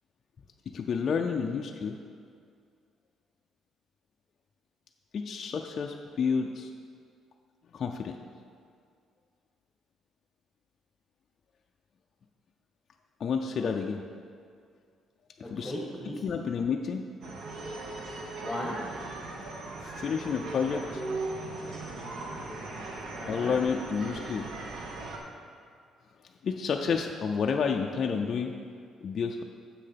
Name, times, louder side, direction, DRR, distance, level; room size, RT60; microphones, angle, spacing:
voice 1, 0.7-2.0 5.1-6.7 7.7-8.2 13.2-14.0 15.4-15.7 16.2-17.0 19.8-21.0 23.3-24.5 26.4-28.5 29.0-29.4, left 6 dB, 40° left, 2 dB, 0.4 m, -30 dB
voice 2, 15.4-16.2 18.4-18.8 21.8-22.2 22.5-22.8 23.1-23.5, left 1 dB, 10° left, -1 dB, 1.5 m, -38 dB
sound 1, 17.2-25.2, right 2 dB, 55° right, 1.1 m, -38 dB
7.5 x 6.4 x 5.8 m, 2.2 s
cardioid pair, 155°, 0 cm